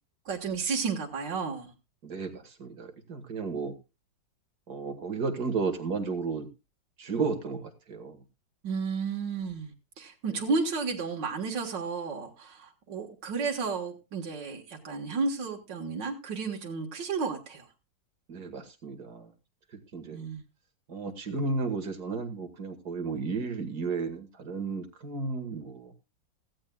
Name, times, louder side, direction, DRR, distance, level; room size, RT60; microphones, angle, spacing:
voice 1, 0.3-1.7 8.6-17.7 20.1-20.4, right 4 dB, 80° right, 0 dB, 2.2 m, -32 dB
voice 2, 2.0-3.7 4.7-6.5 7.0-8.2 18.3-19.3 19.9-20.2 20.9-25.9, right 4 dB, 60° right, 8 dB, 2.2 m, -33 dB
16.5 x 15.0 x 2.3 m, 0.28 s
omnidirectional pair, 1.9 m